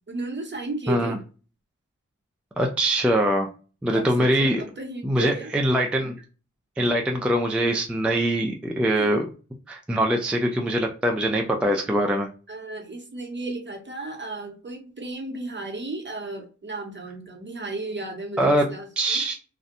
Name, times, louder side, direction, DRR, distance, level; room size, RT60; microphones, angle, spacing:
voice 1, 0.1-1.2 3.9-5.5 8.9-9.1 12.5-19.2, right 2 dB, 35° right, 3 dB, 0.7 m, -34 dB
voice 2, 0.9-1.2 2.6-3.5 3.8-4.6 5.0-6.1 6.8-9.2 9.7-12.3 18.4-18.7 19.0-19.4, right 1 dB, 5° right, 2 dB, 0.3 m, -23 dB
2.6 x 2.1 x 2.4 m, 0.36 s
wide cardioid pair, 75°, 30 cm